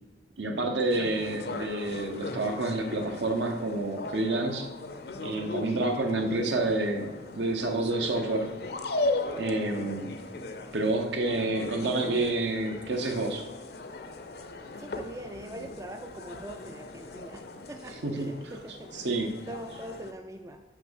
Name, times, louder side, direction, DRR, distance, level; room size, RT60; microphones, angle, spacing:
voice 1, 0.4-4.7 5.2-8.5 9.4-10.1 10.7-13.4 18.0-18.3 18.9-19.4, right 2 dB, 70° right, 4 dB, 0.9 m, -29 dB
sound 1, 0.9-20.1, left 2 dB, 55° left, 0.6 m, -38 dB
voice 2, 14.8-18.9 19.3-20.6, right 1 dB, 15° right, 5 dB, 0.3 m, -43 dB
5.9 x 5.0 x 6.3 m, 1.2 s
head